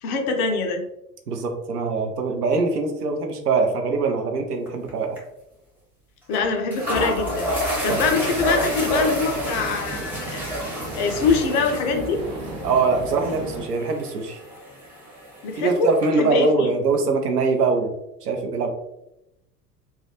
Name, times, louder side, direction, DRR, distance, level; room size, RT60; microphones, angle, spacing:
voice 1, 0.0-0.8 6.3-7.5 7.8-10.4 11.0-12.2 15.4-16.7, left 4 dB, 35° left, 4 dB, 0.4 m, -23 dB
voice 2, 1.3-5.2 7.9-8.2 12.6-14.4 15.6-17.9 18.2-18.7, right 4 dB, 75° right, 4 dB, 0.6 m, -23 dB
sound 1, 4.7-4.9 5.2-5.3 6.3-6.4 6.7-16.1, equal, 5° right, 0.7 m, -30 dB
sound 2, 7.8-13.7, right 2 dB, 45° right, 0.7 m, -34 dB
2.3 x 2.1 x 2.8 m, 0.85 s
figure-of-eight pair, 80°, 47 cm